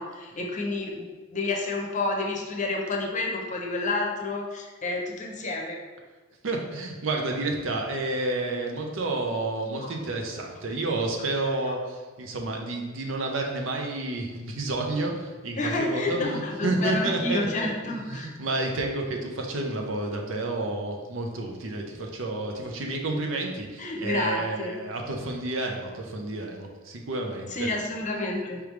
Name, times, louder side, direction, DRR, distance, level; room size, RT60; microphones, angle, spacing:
voice 1, 0.0-5.8 9.8-9.9 11.7-11.8 15.6-18.3 23.8-24.8 27.5-28.6, left 2 dB, 40° left, 0 dB, 0.7 m, -29 dB
voice 2, 6.4-27.7, right 2 dB, 70° right, 2 dB, 0.7 m, -30 dB
4.8 x 3.4 x 3.2 m, 1.3 s
head